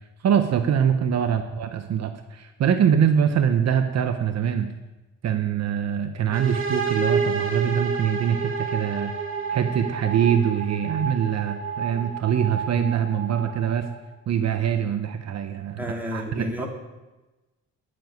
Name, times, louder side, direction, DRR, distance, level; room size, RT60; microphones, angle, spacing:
voice 1, 0.2-4.7 5.2-9.1 9.5-13.9 14.3-16.6, right 8 dB, 60° right, 7 dB, 1.0 m, -23 dB
sound 1, 6.3-14.0, right 5 dB, 45° right, 2.3 m, -30 dB
voice 2, 15.8-16.7, left 1 dB, 5° right, -1 dB, 3.3 m, -31 dB
11.0 x 7.1 x 9.1 m, 1.1 s
cardioid pair, 90°, 30 cm